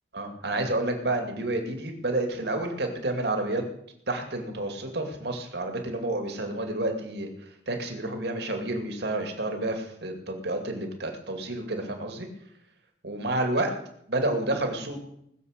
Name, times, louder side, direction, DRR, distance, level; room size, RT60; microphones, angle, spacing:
voice 1, 0.1-3.6 4.1-7.3 7.7-12.3 13.0-13.7 14.1-15.0, right 2 dB, 65° right, 4 dB, 2.4 m, -29 dB
20.0 x 7.3 x 6.6 m, 0.75 s
head